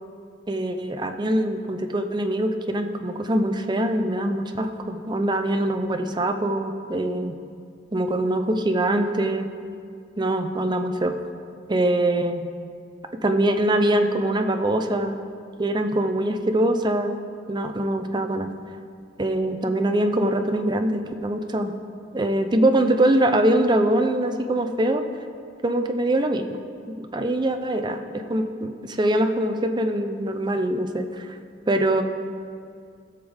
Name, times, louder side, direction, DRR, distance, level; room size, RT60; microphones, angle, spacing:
voice 1, 0.5-7.3 7.9-9.5 10.2-11.1 11.7-12.5 13.2-15.2 15.6-17.2 17.5-18.5 19.2-21.7 22.1-25.0 25.6-26.6 26.9-31.3 31.7-32.0, right 1 dB, 25° right, 6 dB, 0.6 m, -23 dB
16.0 x 7.1 x 3.5 m, 2.3 s
head